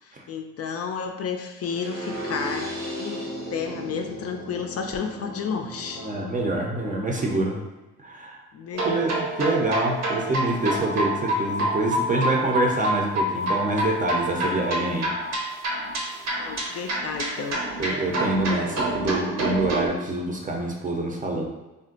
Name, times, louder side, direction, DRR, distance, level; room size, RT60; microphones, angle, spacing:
voice 1, 0.0-2.7 3.0-6.0 8.5-8.9 16.4-17.6, left 6 dB, 55° left, 4 dB, 0.4 m, -32 dB
sound 1, 1.6-7.6, equal, 80° right, 1.1 m, -36 dB
voice 2, 6.0-7.6 8.0-8.4 8.8-15.1 17.8-21.5, right 2 dB, 25° right, 0 dB, 0.6 m, -26 dB
sound 2, 8.7-19.9, right 1 dB, 60° right, 0.8 m, -27 dB
2.5 x 2.1 x 3.8 m, 1.0 s
cardioid pair, 90°, 30 cm